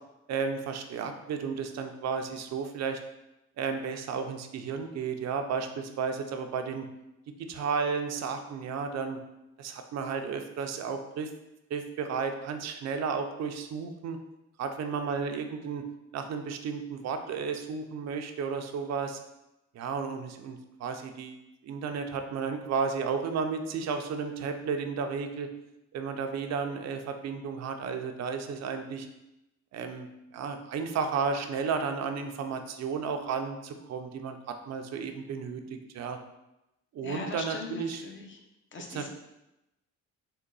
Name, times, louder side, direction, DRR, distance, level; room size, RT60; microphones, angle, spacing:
voice 1, 0.3-3.0 3.6-6.9 7.5-9.2 9.6-11.3 11.7-14.2 14.6-15.8 16.1-19.2 19.7-25.5 25.9-29.1 29.7-35.6 35.9-36.2 36.9-38.0 38.9-39.1, right 5 dB, 60° right, 6 dB, 0.5 m, -33 dB
voice 2, 37.0-38.4 38.7-39.1, left 4 dB, 40° left, 2 dB, 0.7 m, -39 dB
3.8 x 2.2 x 3.8 m, 0.92 s
cardioid pair, 90°, 30 cm